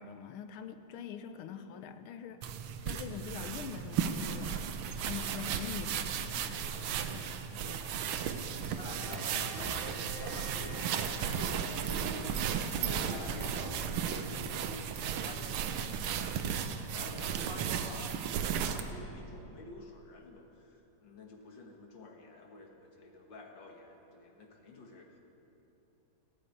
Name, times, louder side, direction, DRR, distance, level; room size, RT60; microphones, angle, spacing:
voice 1, 0.0-4.6 5.0-7.6, left 7 dB, 80° left, 10 dB, 1.7 m, -44 dB
sound 1, 2.4-18.9, right 8 dB, 80° right, 1.7 m, -35 dB
voice 2, 7.5-7.9 8.5-25.2, left 2 dB, 65° left, 2 dB, 2.0 m, -49 dB
sound 2, 8.8-14.6, right 1 dB, 55° right, 2.8 m, -47 dB
16.5 x 8.9 x 9.6 m, 3.0 s
omnidirectional pair, 2.3 m